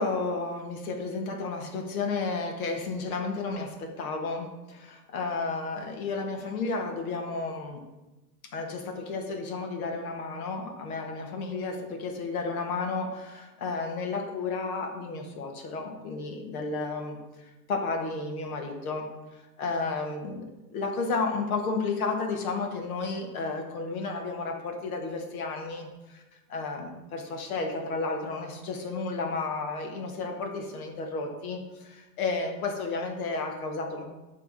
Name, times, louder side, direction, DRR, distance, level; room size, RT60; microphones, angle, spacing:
voice 1, 0.0-7.8 8.5-17.2 17.7-20.4 20.7-26.2 26.5-34.0, left 3 dB, 60° left, 3 dB, 1.7 m, -32 dB
10.5 x 3.6 x 4.1 m, 1.1 s
hypercardioid pair, 130°, 48 cm